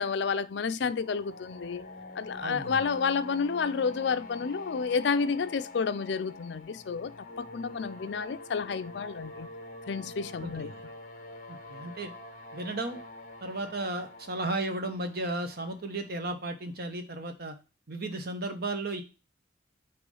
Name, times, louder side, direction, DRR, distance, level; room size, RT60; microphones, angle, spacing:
voice 1, 0.0-1.8 2.2-7.1 7.4-9.5 9.9-10.7, left 5 dB, 65° left, 0.4 m, -30 dB
sound 1, 0.8-16.6, left 2 dB, 45° left, 0.8 m, -46 dB
voice 2, 2.4-2.7 10.4-10.8 11.5-12.1 12.5-13.0 13.4-17.6 17.9-19.0, right 2 dB, 50° right, 1.0 m, -34 dB
6.3 x 3.1 x 5.4 m
head